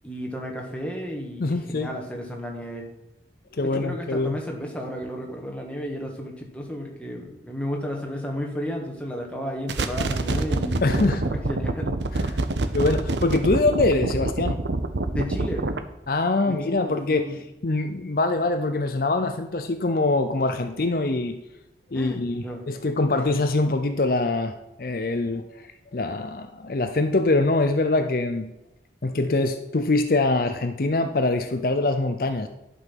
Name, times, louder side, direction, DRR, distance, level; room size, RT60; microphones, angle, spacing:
voice 1, 0.0-2.8 3.6-12.0 15.0-15.6 16.5-17.4 21.9-22.7 23.1-23.4, equal, 5° left, 0 dB, 1.6 m, -33 dB
voice 2, 1.4-1.9 3.5-4.3 10.8-11.2 12.7-14.6 16.1-21.4 21.9-25.6 25.9-28.5 29.0-32.5, left 2 dB, 50° left, 7 dB, 0.6 m, -24 dB
sound 1, 9.7-15.8, right 2 dB, 85° right, 0.8 m, -26 dB
11.0 x 5.5 x 5.9 m, 0.94 s
head